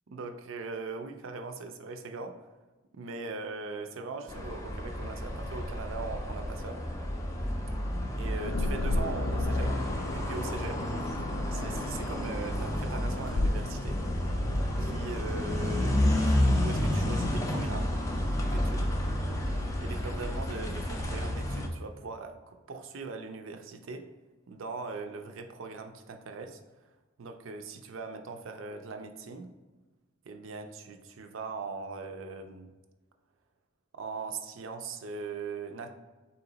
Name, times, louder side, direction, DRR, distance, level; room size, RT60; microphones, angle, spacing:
voice 1, 0.1-2.4 2.9-6.8 8.2-9.8 10.1-10.8 11.5-14.0 14.8-16.0 16.3-17.9 18.4-18.9 19.8-24.1 24.5-26.6 27.2-29.5 30.3-32.7 33.9-35.9, right 4 dB, 75° right, 6 dB, 0.5 m, -40 dB
sound 1, 4.3-21.7, left 1 dB, 15° left, 0.4 m, -30 dB
sound 2, 8.4-16.4, left 2 dB, 75° left, 0.4 m, -36 dB
4.1 x 2.9 x 3.9 m, 1.2 s
head